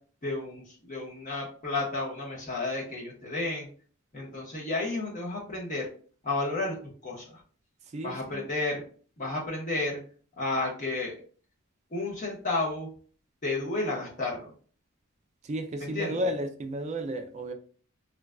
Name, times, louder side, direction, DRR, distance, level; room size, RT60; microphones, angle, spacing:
voice 1, 0.2-3.7 4.1-5.8 6.2-6.8 7.0-7.4 8.0-8.8 9.2-10.0 10.4-11.1 11.9-12.9 13.4-14.5 15.9-16.2, left 2 dB, 40° left, 1.0 m, -32 dB
voice 2, 7.8-8.4 15.4-17.5, right 1 dB, 35° right, 0.4 m, -33 dB
3.8 x 2.4 x 2.2 m
head